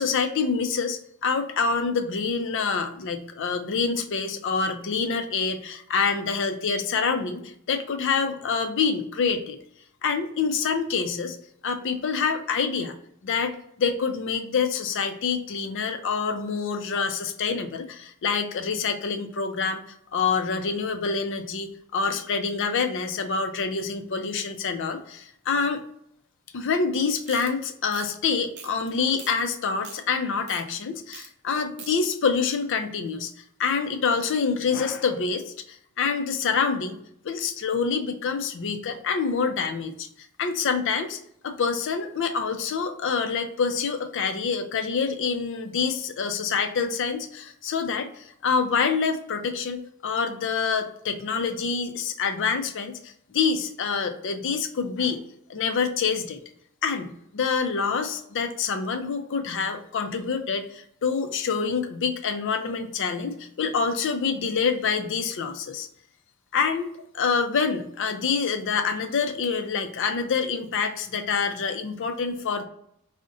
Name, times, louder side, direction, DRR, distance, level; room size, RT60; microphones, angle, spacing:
voice 1, 0.0-9.6 10.0-11.4 11.6-12.9 13.2-19.8 20.1-25.8 26.5-33.3 33.6-37.0 37.2-40.1 40.4-41.2 41.4-55.2 55.5-56.4 56.8-65.9 66.5-72.7, left 5 dB, 55° left, 7 dB, 0.4 m, -26 dB
sound 1, 27.2-27.5 27.9-28.1 28.6-28.9 29.2-29.3 29.7-30.0 30.5-30.6 31.1-31.3 31.5-31.9, right 6 dB, 50° right, 0.6 m, -42 dB
3.8 x 2.1 x 3.6 m, 0.72 s
head